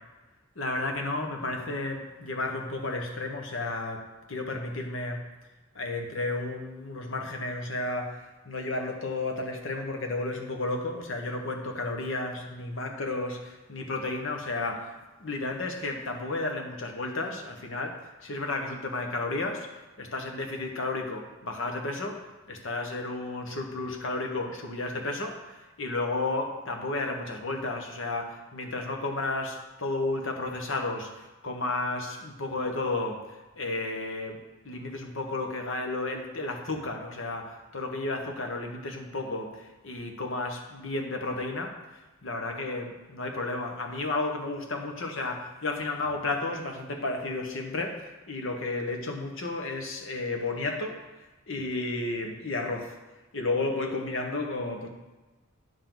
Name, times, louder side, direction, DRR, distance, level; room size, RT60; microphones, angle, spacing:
voice 1, 0.5-5.2 5.7-53.0 53.3-54.9, left 2 dB, 65° left, 3 dB, 1.2 m, -33 dB
9.6 x 7.0 x 3.9 m, 1.2 s
head